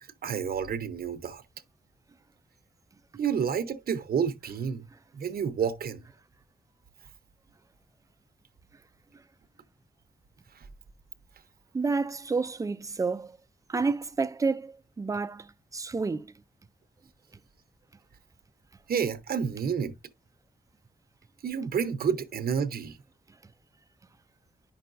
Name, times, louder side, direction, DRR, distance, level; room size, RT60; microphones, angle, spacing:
voice 1, 0.2-1.4 3.1-4.9 5.1-6.0 18.9-19.9 21.4-23.0, right 7 dB, 70° right, 0.8 m, -29 dB
voice 2, 11.7-13.4 13.7-15.5 15.7-16.3, right 4 dB, 20° right, 0.3 m, -29 dB
9.1 x 5.8 x 2.5 m
wide cardioid pair, 155°, 16 cm